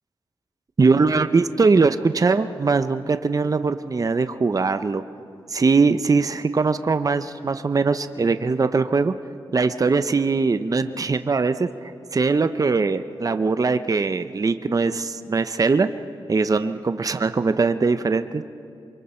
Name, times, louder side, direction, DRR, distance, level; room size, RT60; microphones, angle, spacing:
voice 1, 0.8-5.0 5.5-9.1 9.5-15.9 16.3-18.4, right 4 dB, 40° right, 10 dB, 0.7 m, -21 dB
27.0 x 23.5 x 4.4 m, 2.5 s
cardioid pair, 75°, 9 cm